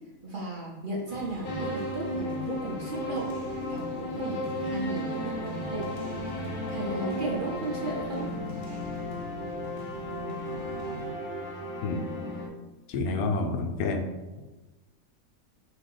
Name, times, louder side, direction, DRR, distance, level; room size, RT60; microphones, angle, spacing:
voice 1, 0.2-3.4 3.6-5.9 6.7-8.3, right 2 dB, 45° right, -4 dB, 0.7 m, -35 dB
sound 1, 1.1-11.1, right 1 dB, 70° right, 1.3 m, -44 dB
sound 2, 1.4-12.5, left 1 dB, 45° left, 0.7 m, -34 dB
voice 2, 12.9-14.1, left 3 dB, 85° left, 4 dB, 1.1 m, -28 dB
4.7 x 2.9 x 3.8 m, 1.2 s
omnidirectional pair, 1.5 m